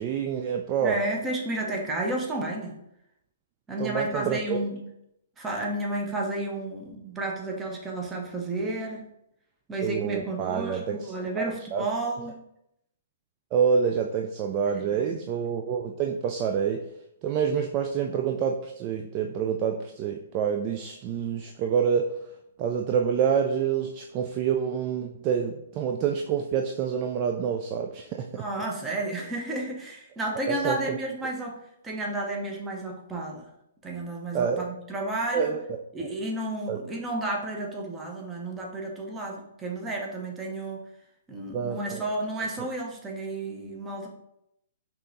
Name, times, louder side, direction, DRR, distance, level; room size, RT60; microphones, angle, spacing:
voice 1, 0.0-1.0 3.8-4.6 9.8-11.8 13.5-16.9 17.2-22.1 22.6-28.4 30.5-31.0 34.3-34.6 35.3-35.6 36.0-36.1 36.7-36.8 41.5-42.0, right 7 dB, 30° right, 3 dB, 0.3 m, -27 dB
voice 2, 0.8-2.8 3.7-4.8 5.4-9.1 9.7-12.4 14.8-15.2 28.4-31.6 31.8-33.5 33.8-35.5 35.9-40.8 41.3-44.1, right 2 dB, 15° right, -1 dB, 0.8 m, -32 dB
5.4 x 2.9 x 2.6 m, 0.80 s
figure-of-eight pair, 120°, 0 cm